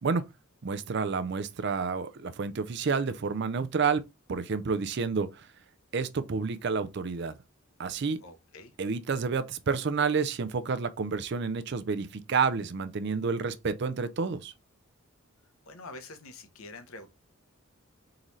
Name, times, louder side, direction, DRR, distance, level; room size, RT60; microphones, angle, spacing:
voice 1, 0.6-4.0 4.3-5.5 5.9-7.3 7.8-8.2 8.8-14.5, right 5 dB, 55° right, 0.5 m, -29 dB
voice 2, 8.2-8.7 15.6-17.1, left 2 dB, 85° left, 0.9 m, -46 dB
3.8 x 3.1 x 3.9 m
head